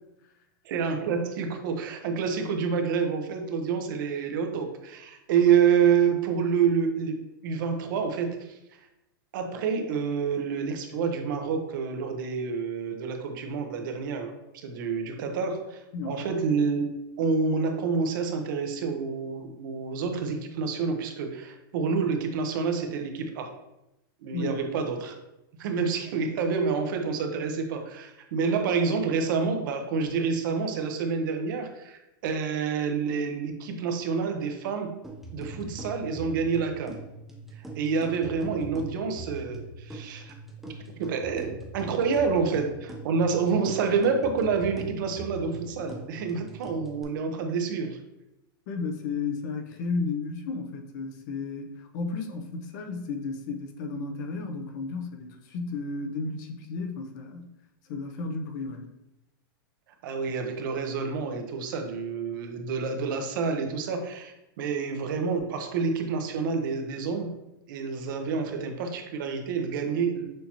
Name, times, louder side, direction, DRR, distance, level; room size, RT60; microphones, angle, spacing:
voice 1, 0.6-7.2 7.4-8.6 9.3-16.9 17.2-23.5 24.2-25.1 25.6-34.9 35.3-37.0 37.5-40.3 40.9-48.0 60.0-67.3 67.7-70.3, right 5 dB, 60° right, 5 dB, 0.8 m, -28 dB
sound 1, 35.0-47.0, right 1 dB, ahead, 0.6 m, -41 dB
voice 2, 48.7-57.5 57.9-58.9, left 4 dB, 50° left, 5 dB, 0.7 m, -33 dB
6.3 x 2.8 x 2.9 m, 0.91 s
supercardioid pair, 145°, 12 cm